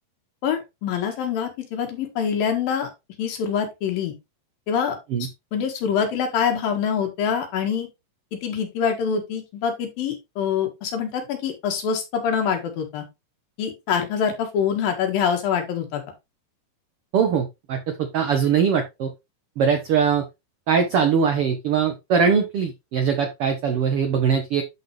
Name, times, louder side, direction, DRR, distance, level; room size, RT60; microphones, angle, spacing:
voice 1, 0.4-2.9 3.2-4.1 4.7-7.9 8.3-13.1 13.6-16.0, left 7 dB, 85° left, 4 dB, 3.4 m, -25 dB
voice 2, 17.1-19.1 19.6-20.2 20.7-24.6, right 6 dB, 85° right, 6 dB, 1.2 m, -21 dB
11.5 x 4.2 x 3.2 m, 0.23 s
omnidirectional pair, 4.0 m